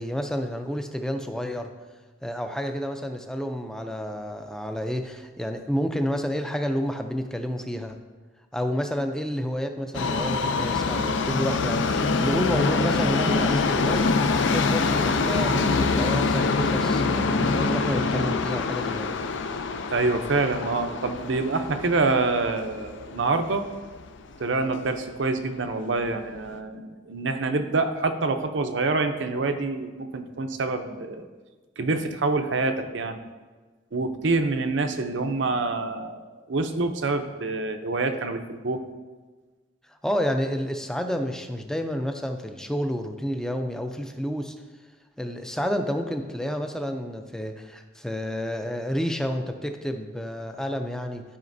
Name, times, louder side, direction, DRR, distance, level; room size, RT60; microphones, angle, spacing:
voice 1, 0.0-1.7 2.2-8.0 8.5-14.1 14.4-19.2 39.9-44.5 45.2-51.2, equal, 5° left, 6 dB, 0.4 m, -30 dB
Subway metro underground, 9.9-24.1 24.4-24.5 25.3-25.4 25.7-25.8 26.4-26.5, left 4 dB, 75° left, 0.5 m, -25 dB
voice 2, 19.9-23.6 24.4-31.2 31.8-33.2 33.9-38.8, right 3 dB, 75° right, 7 dB, 0.6 m, -26 dB
12.5 x 5.0 x 2.6 m, 1.3 s
head